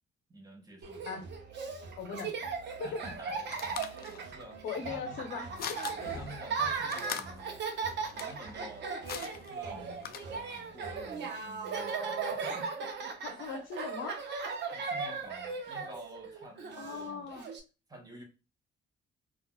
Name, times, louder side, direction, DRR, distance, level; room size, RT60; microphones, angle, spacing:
voice 1, 0.3-1.1 2.8-3.4 3.7-4.6 4.9-5.2 6.2-7.6 8.1-10.0 10.5-12.7 14.7-17.3 17.9-18.2, right 1 dB, 20° right, 1.1 m, -50 dB
Laughter, 0.8-17.6, right 5 dB, 60° right, 0.7 m, -37 dB
voice 2, 2.0-2.3 2.8-3.0 4.6-5.8 13.2-14.3 16.8-17.4, left 5 dB, 85° left, 0.8 m, -39 dB
sound 1, 3.0-10.7, left 8 dB, 50° left, 0.4 m, -44 dB
3.6 x 2.4 x 2.2 m
cardioid pair, 90°, 20 cm